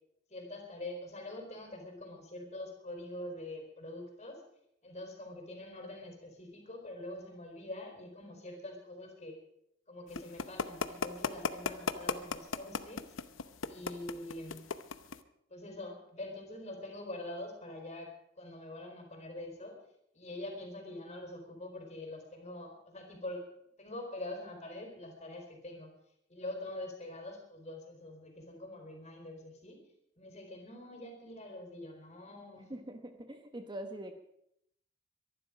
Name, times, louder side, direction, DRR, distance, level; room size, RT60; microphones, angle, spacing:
voice 1, 0.3-4.4 4.8-9.3 9.9-13.1 13.7-14.6 15.5-18.1 18.4-19.8 20.1-23.4 23.8-25.9 26.3-29.8 30.2-32.8, left 1 dB, 35° left, 3 dB, 4.4 m, -44 dB
sound 1, 10.1-15.2, left 5 dB, 75° left, 0.8 m, -35 dB
voice 2, 32.7-34.1, right 1 dB, 25° right, 6 dB, 1.1 m, -43 dB
23.0 x 11.5 x 5.1 m, 0.77 s
head